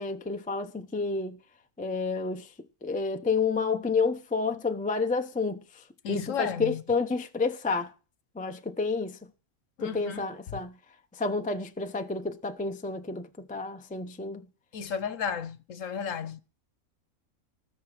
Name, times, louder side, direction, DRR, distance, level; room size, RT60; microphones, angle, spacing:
voice 1, 0.0-1.4 1.8-2.5 2.8-7.9 8.3-9.2 9.8-10.8 11.1-14.5, left 4 dB, 10° left, 0.5 m, -30 dB
voice 2, 6.0-6.8 9.8-10.3 10.5-10.6 14.7-16.4, left 7 dB, 65° left, 1.2 m, -33 dB
19.0 x 6.8 x 4.9 m
omnidirectional pair, 1.5 m